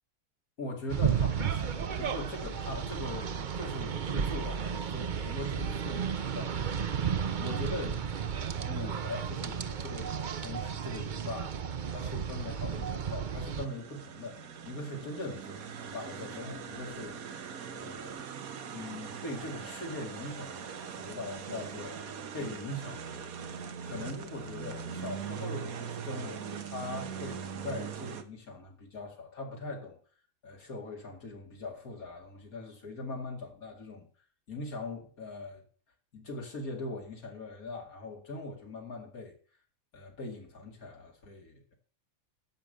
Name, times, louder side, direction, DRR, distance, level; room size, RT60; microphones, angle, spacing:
voice 1, 0.6-6.5 7.1-8.1 8.5-10.1 10.4-11.5 11.9-17.2 17.7-18.2 18.7-22.0 22.3-30.0 30.4-34.1 34.5-35.6 36.1-39.3 39.9-41.7, left 2 dB, 80° left, 2.7 m, -41 dB
sound 1, 0.9-13.7, right 7 dB, 45° right, 0.7 m, -33 dB
sound 2, 13.5-28.2, right 7 dB, 80° right, 1.5 m, -41 dB
11.0 x 6.9 x 7.7 m
omnidirectional pair, 1.5 m